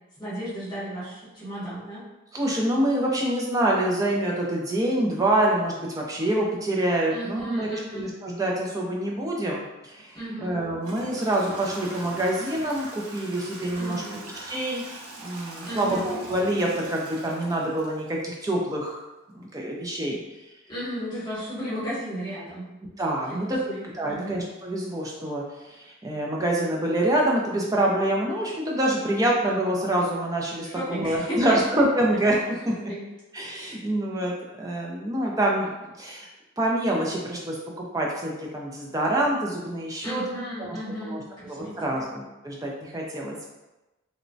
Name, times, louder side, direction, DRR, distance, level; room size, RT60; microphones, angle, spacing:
voice 1, 0.2-2.0 7.1-8.1 10.1-10.6 13.8-14.2 15.6-16.1 20.7-22.7 23.3-24.4 30.6-31.6 32.9-33.0 40.0-42.1, equal, 20° left, -9 dB, 1.0 m, -34 dB
voice 2, 2.3-14.0 14.4-14.9 15.2-19.0 19.3-20.2 23.0-23.6 23.8-32.9 33.3-34.3 34.6-36.3 36.6-40.2 40.6-43.4, right 1 dB, 15° right, -2 dB, 0.3 m, -26 dB
Toilet flush / Trickle dribble, 10.0-10.1 10.8-18.6, right 2 dB, 85° right, 0.6 m, -42 dB
3.0 x 2.1 x 2.5 m, 1.0 s
head